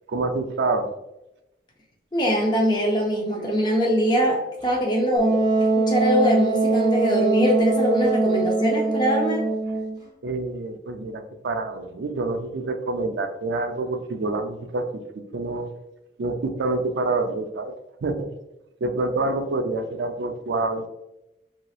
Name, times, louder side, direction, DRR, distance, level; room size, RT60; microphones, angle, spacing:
voice 1, 0.1-0.9 10.2-15.0 15.3-15.7 16.2-17.7 18.0-18.3 18.8-20.9, right 3 dB, 75° right, 7 dB, 0.4 m, -27 dB
voice 2, 2.1-9.5, equal, 25° left, -1 dB, 0.5 m, -22 dB
Wind instrument woodwind instrument, 5.2-10.0, right 3 dB, 25° right, 0.6 m, -22 dB
3.1 x 2.8 x 2.3 m, 0.89 s
head